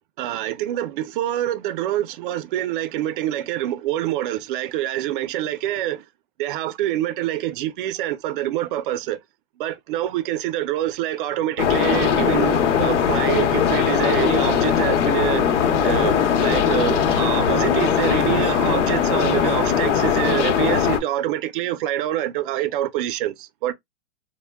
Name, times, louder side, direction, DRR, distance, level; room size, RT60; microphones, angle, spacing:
voice 1, 0.2-6.0 6.4-9.2 9.6-15.4 15.8-16.1 16.4-23.7, right 13 dB, 50° right, 0.5 m, -26 dB
sound 1, 11.6-21.0, left 7 dB, 90° left, 0.8 m, -20 dB
2.2 x 2.1 x 3.3 m
supercardioid pair, 160°, 35 cm